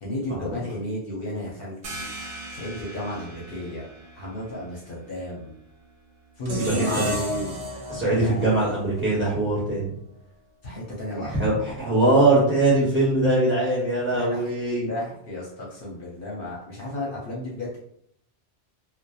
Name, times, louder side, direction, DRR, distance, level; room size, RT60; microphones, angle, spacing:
voice 1, 0.0-2.1 2.5-3.9 4.2-5.5 6.4-7.6 8.0-8.5 10.6-11.4 14.1-14.5 14.9-17.8, left 1 dB, 60° left, -4 dB, 0.8 m, -33 dB
sound 1, 1.8-7.2, right 2 dB, 80° right, 0.9 m, -42 dB
sound 2, 6.4-9.6, equal, 65° right, 0.3 m, -33 dB
voice 2, 6.6-7.1 7.9-9.9 11.2-14.9, right 2 dB, 10° right, -7 dB, 0.9 m, -22 dB
2.7 x 2.1 x 2.2 m, 0.70 s
omnidirectional pair, 1.1 m